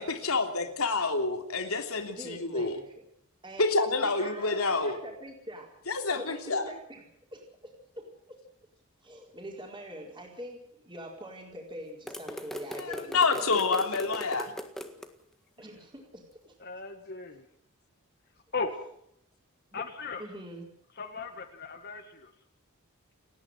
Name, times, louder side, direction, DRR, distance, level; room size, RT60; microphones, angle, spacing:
voice 1, 0.0-2.8 3.6-5.0 5.9-6.6 12.8-14.5, left 3 dB, 80° left, 5 dB, 3.4 m, -28 dB
voice 2, 2.1-2.9 3.4-3.6 4.0-5.8 6.1-8.4 9.0-13.3 15.6-16.5 19.7-19.8 20.2-20.7, right 1 dB, 20° right, 0 dB, 4.6 m, -44 dB
sound 1, 12.1-15.1, equal, ahead, 1.7 m, -39 dB
voice 3, 16.6-17.5 18.5-18.7 19.7-20.2 21.0-22.3, left 4 dB, 45° left, 5 dB, 1.9 m, -37 dB
30.0 x 10.5 x 9.2 m, 0.72 s
head